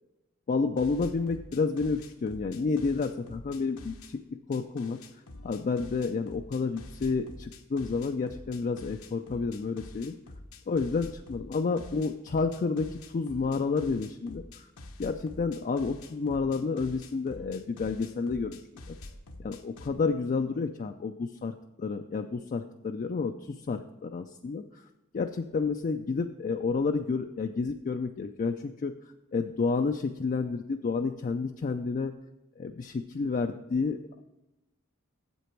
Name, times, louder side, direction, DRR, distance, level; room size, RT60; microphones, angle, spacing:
voice 1, 0.5-4.2 4.5-5.0 5.4-10.2 10.7-14.7 15.0-18.6 18.9-19.0 19.4-24.8 25.1-28.9 29.3-32.1 32.6-34.2, left 4 dB, 35° left, 6 dB, 0.3 m, -30 dB
sound 1, 0.8-4.1 4.5-19.9, left 2 dB, 75° left, 0.9 m, -47 dB
8.1 x 7.7 x 4.5 m, 1.0 s
head